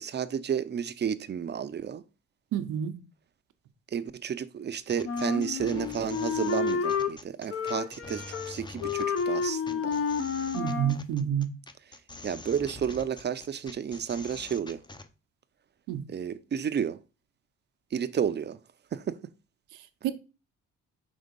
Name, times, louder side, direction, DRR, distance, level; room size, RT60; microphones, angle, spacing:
voice 1, 0.0-2.0 3.9-10.0 12.2-14.8 16.1-17.0 17.9-18.6 18.9-19.2, right 8 dB, 35° right, 0.6 m, -31 dB
voice 2, 2.5-2.9 10.5-11.5 15.9-16.1 20.0-20.1, right 9 dB, 90° right, 0.8 m, -28 dB
sound 1, 4.9-15.1, left 2 dB, 15° left, 0.6 m, -45 dB
Wind instrument woodwind instrument, 5.0-7.1 7.5-8.5 8.8-11.0, left 5 dB, 50° left, 0.9 m, -30 dB
5.2 x 3.5 x 5.2 m
cardioid pair, 90°, 30 cm